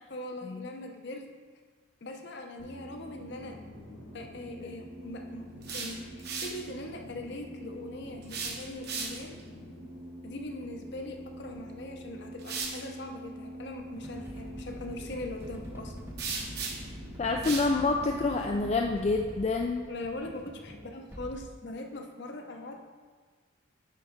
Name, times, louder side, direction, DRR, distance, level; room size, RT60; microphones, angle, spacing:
voice 1, 0.1-1.3 2.0-3.6 4.1-5.4 5.7-6.0 6.4-9.4 10.2-15.9 19.9-22.9, left 1 dB, 55° left, 3 dB, 0.8 m, -41 dB
sound 1, 2.6-18.7, equal, 75° left, 1.9 m, -45 dB
sound 2, 5.4-6.6 8.2-9.4 11.5-11.6 12.4-12.8 16.2-17.0 17.4-17.7, right 5 dB, 50° right, 1.0 m, -36 dB
sound 3, 13.9-21.4, equal, 10° right, 0.6 m, -45 dB
voice 2, 17.2-19.9, left 3 dB, 30° left, 2 dB, 0.3 m, -27 dB
9.1 x 3.9 x 5.1 m, 1.5 s
head